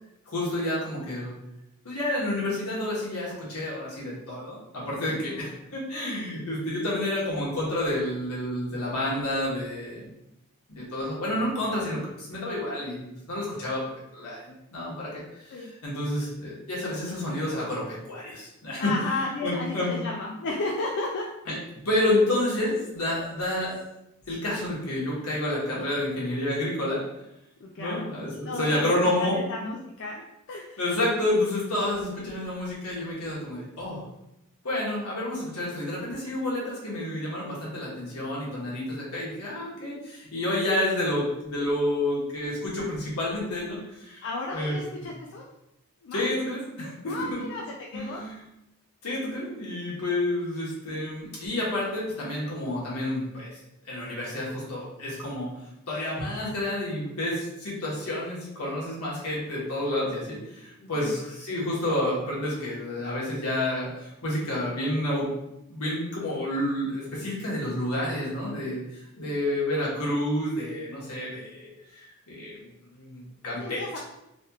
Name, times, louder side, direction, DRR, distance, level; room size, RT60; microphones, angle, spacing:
voice 1, 0.3-1.3 1.8-10.1 10.7-13.8 14.1-20.0 21.5-21.6 21.8-23.8 24.3-27.0 27.8-29.4 30.8-34.0 34.6-44.2 44.5-44.8 46.1-47.4 47.9-48.4 49.0-53.5 53.8-55.5 55.9-65.3 65.7-68.8 69.2-72.6 72.9-74.0, left 1 dB, 80° left, -6 dB, 1.3 m, -29 dB
voice 2, 5.1-5.6 15.5-15.7 18.8-21.3 27.6-28.1 28.5-28.9 29.2-30.8 44.2-45.4 46.0-46.3 47.0-47.6 47.9-48.2 60.8-61.2 69.2-69.4 73.6-74.0, left 2 dB, 55° left, -2 dB, 0.3 m, -34 dB
3.3 x 2.3 x 2.8 m, 0.86 s
head